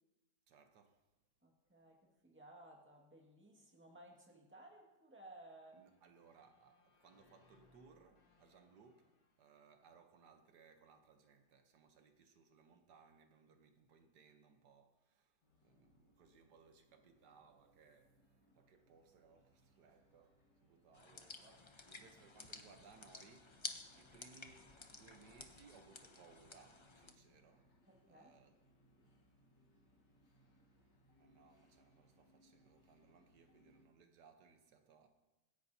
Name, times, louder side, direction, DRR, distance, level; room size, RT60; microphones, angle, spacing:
voice 1, 0.5-1.0 5.7-23.6 23.9-27.7 28.1-28.5 31.2-35.1, right 5 dB, 75° right, 1.6 m, -65 dB
voice 2, 1.4-5.8 27.9-28.3, right 1 dB, 5° right, 1.8 m, -59 dB
sound 1, 5.7-10.7, left 3 dB, 60° left, 2.0 m, -74 dB
sound 2, 15.4-33.9, equal, 85° left, 2.5 m, -72 dB
sound 3, 20.9-27.1, left 3 dB, 35° left, 0.4 m, -53 dB
25.0 x 10.0 x 2.8 m
omnidirectional pair, 1.8 m